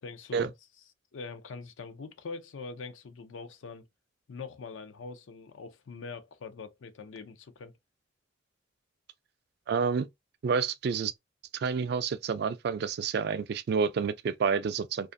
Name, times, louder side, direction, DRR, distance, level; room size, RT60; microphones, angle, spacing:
voice 1, 0.0-0.5 1.1-3.9 4.3-7.7, left 4 dB, 90° left, 0.5 m, -43 dB
voice 2, 9.7-10.1 10.4-11.1 11.5-15.1, right 5 dB, 55° right, 0.3 m, -29 dB
2.5 x 2.4 x 2.5 m
head